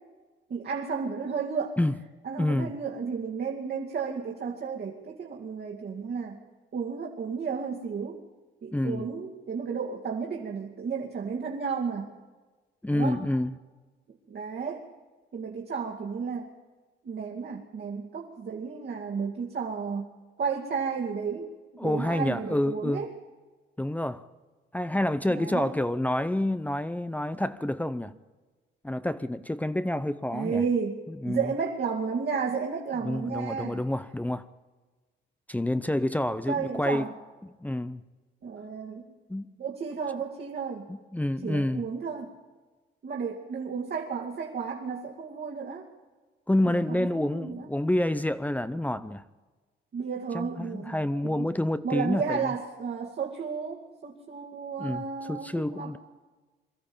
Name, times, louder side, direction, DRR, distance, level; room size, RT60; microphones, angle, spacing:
voice 1, 0.5-1.8 2.2-6.4 6.7-8.2 8.6-12.1 12.9-13.2 14.1-14.9 15.3-16.5 17.0-20.1 20.4-21.5 21.8-23.1 25.3-25.7 30.3-33.8 36.5-37.1 38.4-39.1 39.6-40.9 41.4-42.3 43.0-45.9 46.9-47.7 49.9-51.5 51.8-56.0, right 5 dB, 55° right, 2.4 m, -33 dB
voice 2, 2.4-2.7 8.7-9.1 12.8-13.5 21.8-23.0 23.8-24.3 24.7-28.1 28.8-30.6 31.1-31.5 33.0-34.5 35.5-37.1 37.6-38.0 39.3-39.4 40.9-41.8 46.5-49.2 50.3-52.5 54.8-56.0, left 1 dB, 10° left, 0.7 m, -28 dB
23.5 x 13.5 x 8.8 m
cardioid pair, 90°, 20 cm